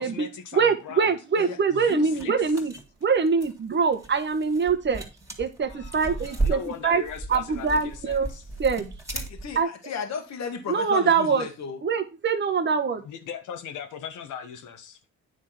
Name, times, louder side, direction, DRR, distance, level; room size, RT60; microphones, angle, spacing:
voice 1, 0.0-1.1 1.7-2.5 5.6-8.5 13.0-15.0, left 7 dB, 80° left, 1.4 m, -39 dB
voice 2, 0.5-2.7 3.0-5.0 5.4-7.0 7.3-8.3 8.6-8.8 9.5-9.7 10.7-11.4 11.8-13.0, right 5 dB, 35° right, 1.3 m, -24 dB
sound 1, 1.9-9.6, right 3 dB, 10° right, 2.6 m, -34 dB
voice 3, 9.1-11.8, left 6 dB, 60° left, 1.8 m, -34 dB
9.6 x 3.7 x 5.7 m
cardioid pair, 90°, 30 cm